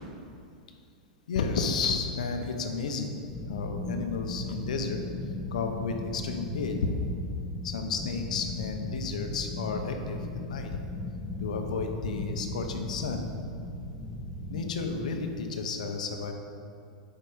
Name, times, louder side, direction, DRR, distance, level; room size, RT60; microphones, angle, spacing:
voice 1, 1.3-3.2 3.5-5.0 5.5-6.9 7.6-10.8 11.4-13.3 14.5-16.3, left 4 dB, 80° left, 5 dB, 0.8 m, -32 dB
sound 1, 3.3-15.4, left 2 dB, 5° left, 1.1 m, -37 dB
6.9 x 5.0 x 5.0 m, 2.4 s
hypercardioid pair, 110°, 4 cm